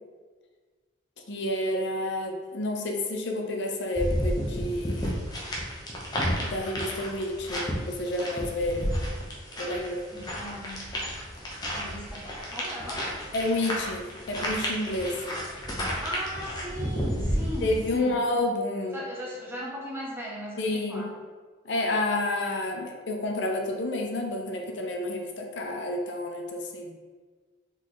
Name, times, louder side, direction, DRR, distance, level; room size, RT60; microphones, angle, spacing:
voice 1, 1.3-5.2 6.3-8.9 9.6-10.1 13.3-15.2 17.6-19.0 20.6-21.1 21.6-27.0, left 1 dB, 65° left, 2 dB, 0.6 m, -30 dB
sound 1, 3.9-17.9, equal, 20° left, 0.8 m, -32 dB
voice 2, 10.1-10.9 11.7-13.1 15.8-18.2 18.9-21.1, equal, 10° right, -4 dB, 0.8 m, -38 dB
4.1 x 3.8 x 3.1 m, 1.4 s
head